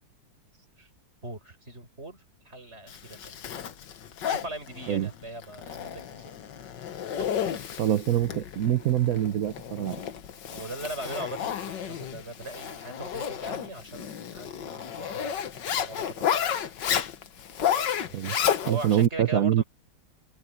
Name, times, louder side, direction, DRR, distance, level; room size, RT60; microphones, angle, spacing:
voice 1, 1.2-3.5 4.2-6.4 7.2-7.5 10.5-16.6 18.0-18.2 18.6-19.6, right 2 dB, 35° right, 6.4 m, -40 dB
Zipper (clothing), 2.9-19.1, left 9 dB, 75° left, 1.9 m, -32 dB
voice 2, 7.8-10.0 18.1-18.4 18.7-19.6, right 11 dB, 55° right, 1.1 m, -25 dB
open air
omnidirectional pair, 2.0 m